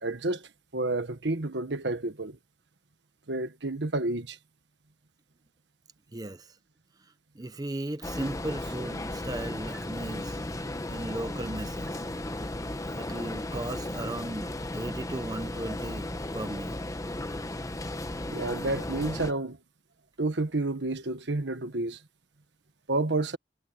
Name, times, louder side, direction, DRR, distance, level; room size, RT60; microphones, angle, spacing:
voice 1, 0.0-2.4 3.3-4.4 18.3-19.6 20.2-22.0 22.9-23.4, right 2 dB, 75° right, 1.5 m, -30 dB
voice 2, 6.1-6.5 7.3-10.4 10.9-12.0 12.9-16.8, right 1 dB, 20° right, 0.8 m, -37 dB
sound 1, 8.0-19.3, left 1 dB, 20° left, 1.1 m, -35 dB
head